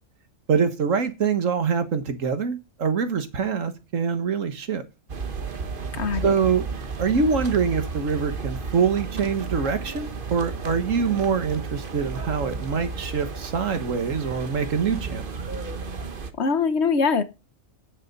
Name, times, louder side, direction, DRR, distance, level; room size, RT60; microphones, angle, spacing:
voice 1, 0.5-4.8 6.2-6.7 7.0-15.2, right 6 dB, 75° right, 1.7 m, -24 dB
sound 1, 5.1-16.3, right 4 dB, 45° right, 1.2 m, -33 dB
voice 2, 5.9-6.3 16.4-17.2, left 5 dB, 55° left, 1.2 m, -22 dB
9.4 x 7.6 x 5.3 m
omnidirectional pair, 1.4 m